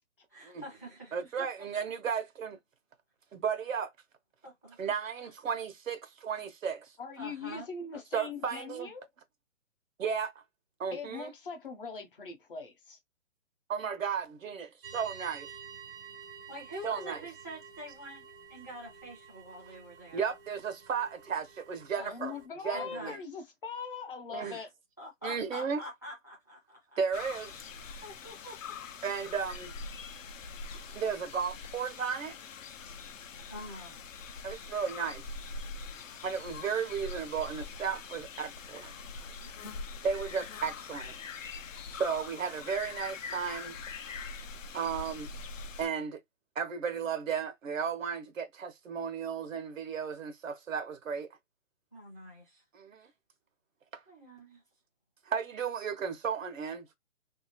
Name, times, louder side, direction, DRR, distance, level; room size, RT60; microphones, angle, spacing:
voice 1, 0.3-1.5 4.4-4.9 7.2-8.0 16.5-20.3 21.9-22.1 22.7-23.1 24.4-24.7 25.0-26.8 28.0-28.6 30.7-31.0 33.5-34.0 39.4-39.7 51.9-52.6 53.0-53.1 54.1-54.6, equal, 15° left, 0.5 m, -46 dB
voice 2, 1.1-2.6 3.3-3.9 4.8-6.9 8.1-8.9 10.0-10.4 10.8-11.3 13.7-15.5 16.8-17.2 20.1-22.3 22.6-23.2 24.3-24.6 25.2-25.8 27.0-27.6 29.0-29.7 30.9-32.4 34.4-35.3 36.2-38.9 40.0-41.1 41.9-43.8 44.7-45.3 45.8-46.2 46.6-51.3 52.7-53.1 53.9-54.0 55.3-56.9, right 6 dB, 90° right, 0.9 m, -34 dB
voice 3, 7.0-9.1 10.9-13.0 21.9-24.7, left 5 dB, 45° left, 0.8 m, -41 dB
sound 1, 14.8-22.5, right 7 dB, 50° right, 0.4 m, -50 dB
sound 2, 27.1-45.9, left 5 dB, 80° left, 0.6 m, -43 dB
2.7 x 2.4 x 2.8 m
hypercardioid pair, 170°, 38 cm